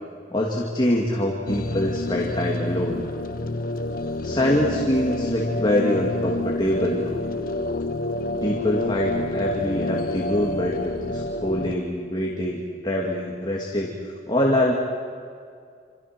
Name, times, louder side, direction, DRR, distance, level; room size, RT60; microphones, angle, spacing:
voice 1, 0.3-3.0 4.2-7.2 8.4-14.7, left 1 dB, 25° left, -2 dB, 2.6 m, -24 dB
sound 1, 1.5-11.8, left 2 dB, 50° left, 1.0 m, -28 dB
28.0 x 27.5 x 6.2 m, 2.2 s
head